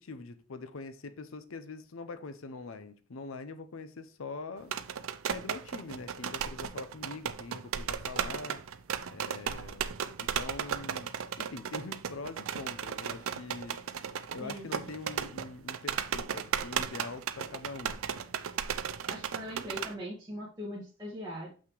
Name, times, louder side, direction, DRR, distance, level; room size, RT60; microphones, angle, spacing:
voice 1, 0.0-4.8 5.3-8.6 9.1-9.8 10.2-13.8 14.3-18.0, left 3 dB, 80° left, 0.7 m, -43 dB
sound 1, 4.6-19.9, right 8 dB, 90° right, 0.5 m, -35 dB
voice 2, 18.8-21.5, equal, 20° right, 1.9 m, -41 dB
6.4 x 5.8 x 3.1 m
head